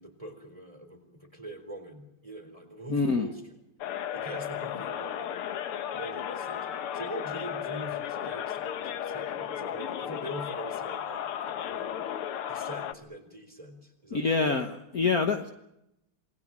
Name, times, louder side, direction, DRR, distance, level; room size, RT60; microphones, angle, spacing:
voice 1, 0.0-3.5 4.1-5.3 5.9-6.7 6.9-11.9 12.5-14.7, right 1 dB, 15° right, 6 dB, 4.2 m, -43 dB
voice 2, 2.9-3.3 14.1-15.5, left 4 dB, 45° left, 6 dB, 1.6 m, -26 dB
sound 1, 3.8-12.9, left 9 dB, 85° left, 2.1 m, -34 dB
27.5 x 20.5 x 7.5 m, 0.85 s
omnidirectional pair, 2.4 m